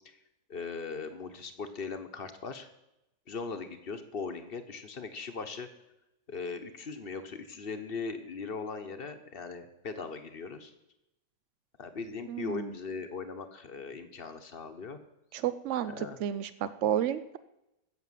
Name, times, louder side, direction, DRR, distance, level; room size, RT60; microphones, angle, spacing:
voice 1, 0.5-2.7 3.3-5.7 6.3-10.7 11.8-15.0 15.9-16.2, left 4 dB, 35° left, 8 dB, 1.1 m, -39 dB
voice 2, 12.3-12.7 15.3-17.4, right 10 dB, 80° right, 13 dB, 0.6 m, -31 dB
15.0 x 7.4 x 7.5 m, 0.91 s
omnidirectional pair, 1.9 m